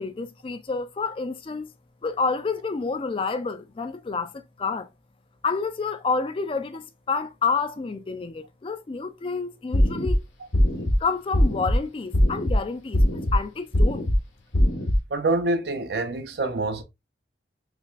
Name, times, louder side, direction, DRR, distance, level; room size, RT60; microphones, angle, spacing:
voice 1, 0.0-1.7 2.0-4.9 5.4-10.2 11.0-14.1, left 4 dB, 30° left, 0.3 m, -29 dB
sound 1, 9.7-10.2 10.5-11.0 11.3-11.8 12.1-12.6 12.9-13.4 13.7-14.2 14.5-15.0, equal, 75° left, 1.0 m, -20 dB
voice 2, 15.1-16.8, right 2 dB, 65° right, 0.6 m, -26 dB
5.9 x 2.2 x 2.3 m
head